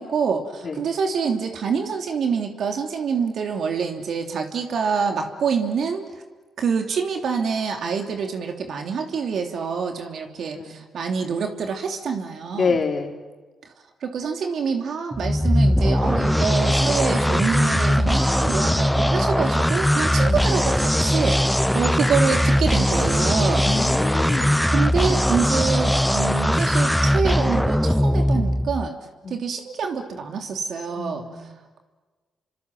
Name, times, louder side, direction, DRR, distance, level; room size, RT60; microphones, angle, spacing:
voice 1, 0.0-6.1 6.6-12.8 14.0-21.4 21.7-23.7 24.7-28.9 29.3-31.2, right 6 dB, 70° right, 4 dB, 3.0 m, -26 dB
voice 2, 12.5-13.2 20.2-20.5 23.6-24.6 29.2-29.4 31.0-31.5, left 5 dB, 55° left, 2 dB, 3.9 m, -27 dB
sound 1, 15.1-28.9, equal, 5° left, 0.8 m, -20 dB
28.5 x 25.0 x 7.7 m, 1.3 s
supercardioid pair, 55°, 0 cm